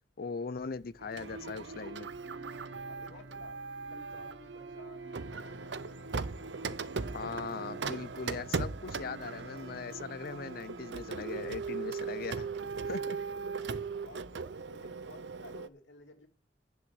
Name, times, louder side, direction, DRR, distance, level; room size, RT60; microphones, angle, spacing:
voice 1, 0.2-2.1 7.1-12.5 12.9-13.2, left 5 dB, 55° left, 0.6 m, -40 dB
sound 1, 1.0-11.5, right 3 dB, 85° right, 1.1 m, -47 dB
Printer, 1.2-4.4 5.1-15.7, right 4 dB, 70° right, 0.6 m, -39 dB
voice 2, 2.8-3.6 3.9-5.2 12.5-13.2 14.0-16.3, left 2 dB, 80° left, 2.8 m, -55 dB
10.5 x 6.3 x 7.9 m
head